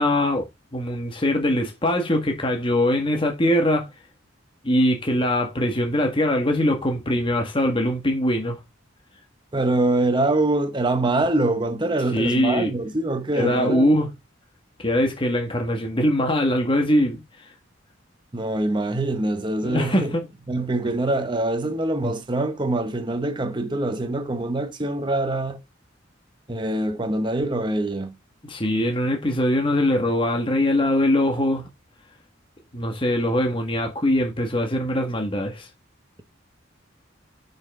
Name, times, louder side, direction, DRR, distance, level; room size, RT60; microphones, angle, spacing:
voice 1, 0.0-3.9 4.6-8.6 12.1-12.7 13.3-14.1 14.8-17.2 19.6-20.3 28.4-31.6 32.7-35.7, left 1 dB, 25° left, 1.7 m, -22 dB
voice 2, 9.5-14.0 18.3-20.1 20.5-25.6 26.5-28.1, right 2 dB, 25° right, 1.0 m, -24 dB
9.8 x 5.6 x 3.7 m
head